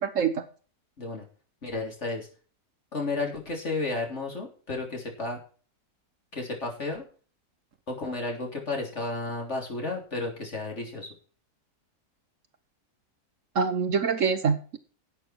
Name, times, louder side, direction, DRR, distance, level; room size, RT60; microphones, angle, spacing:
voice 1, 0.0-0.4 13.5-14.8, right 6 dB, 60° right, 10 dB, 1.3 m, -25 dB
voice 2, 1.6-2.3 2.9-5.4 6.3-7.1 7.9-11.1, left 3 dB, 45° left, 1 dB, 3.7 m, -32 dB
12.0 x 8.4 x 4.5 m, 0.39 s
omnidirectional pair, 1.7 m